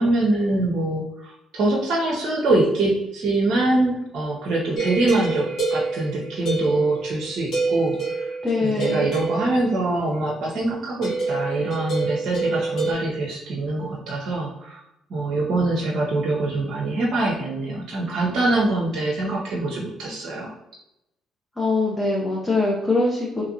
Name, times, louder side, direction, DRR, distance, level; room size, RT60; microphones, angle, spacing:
voice 1, 0.0-8.3 8.6-14.8 15.1-20.5, right 2 dB, 60° right, -3 dB, 0.6 m, -24 dB
sound 1, 4.7-7.2 7.5-9.8 11.0-12.9, right 3 dB, 65° left, 1.4 m, -27 dB
voice 2, 8.4-9.1 21.6-23.4, left 3 dB, 20° left, -4 dB, 0.7 m, -23 dB
2.9 x 2.4 x 2.7 m, 0.85 s
hypercardioid pair, 55°, 0 cm